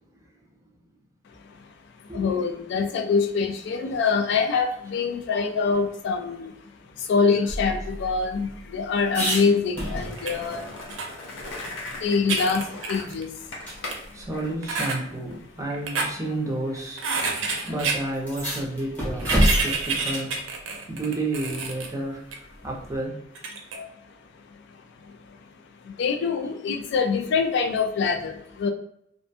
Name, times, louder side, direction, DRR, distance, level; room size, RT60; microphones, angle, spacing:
voice 1, 2.0-6.5 7.0-14.2 17.3-17.7 20.7-20.8 23.7-25.4 25.8-28.7, left 5 dB, 60° left, 6 dB, 0.3 m, -26 dB
sound 1, 7.5-10.5 10.8-10.9 11.3-12.7 13.1-13.2 13.6-13.8 14.8-14.9 15.8-16.1 17.1-17.2 17.5-17.6 18.1-20.3 22.6-23.1, equal, 10° left, 0.9 m, -29 dB
Skateboard, 9.9-15.4, left 2 dB, 90° left, 0.7 m, -39 dB
sound 2, 10.2-10.3 10.9-11.1 11.7-11.8 12.1-13.4 13.9-14.0 14.6-15.0 15.7-16.1 17.0-18.0 19.1-21.9 22.3-22.4 23.4-23.8, right 4 dB, 80° right, 0.5 m, -28 dB
voice 2, 14.1-17.3 17.7-20.3 20.9-22.2 22.6-23.2, right 2 dB, 15° right, -2 dB, 0.6 m, -31 dB
2.5 x 2.1 x 2.6 m, 0.74 s
head